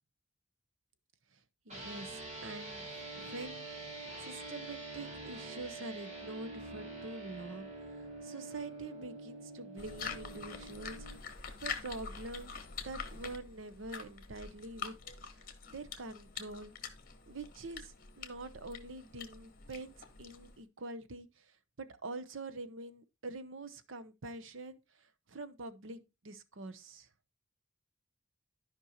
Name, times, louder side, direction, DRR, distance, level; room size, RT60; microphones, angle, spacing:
voice 1, 1.3-14.9 15.2-15.4 15.7-16.7 17.3-19.9 20.2-27.1, right 2 dB, 70° right, 0.8 m, -46 dB
sound 1, 1.7-11.2, right 2 dB, 35° right, 2.5 m, -46 dB
sound 2, 9.8-20.6, left 5 dB, 45° left, 1.1 m, -45 dB
13.0 x 5.3 x 2.9 m
head